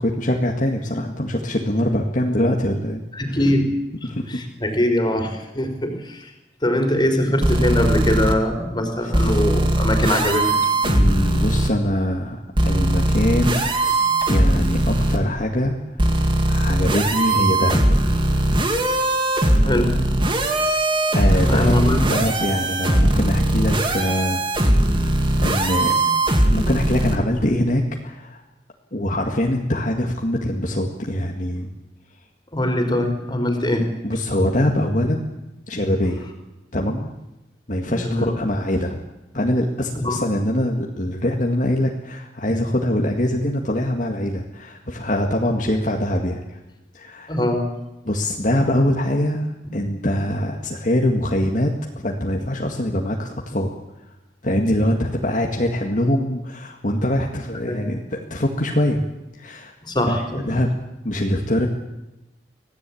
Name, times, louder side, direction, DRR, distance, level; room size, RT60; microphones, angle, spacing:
voice 1, 0.0-3.4 4.0-4.4 9.0-9.4 10.8-13.7 14.3-17.8 21.1-21.8 22.1-25.9 26.5-28.4 28.9-31.7 34.0-35.3 35.7-36.2 36.7-37.1 37.7-39.0 39.3-46.6 46.9-47.4 48.1-53.7 54.4-59.0 59.3-59.7 60.1-60.7 61.0-61.7, left 1 dB, 45° left, 0 dB, 2.1 m, -23 dB
voice 2, 3.1-3.7 4.3-6.3 6.6-10.5 19.6-20.0 21.4-22.1 32.5-33.9 37.8-38.3 39.9-40.2 47.3-47.7 57.6-57.8 59.8-60.4, left 1 dB, 25° left, 5 dB, 4.3 m, -22 dB
sound 1, 7.4-8.3 9.1-11.7 12.6-15.2 16.0-27.2, right 1 dB, 30° right, 2.4 m, -19 dB
25.5 x 17.0 x 8.7 m, 0.95 s
head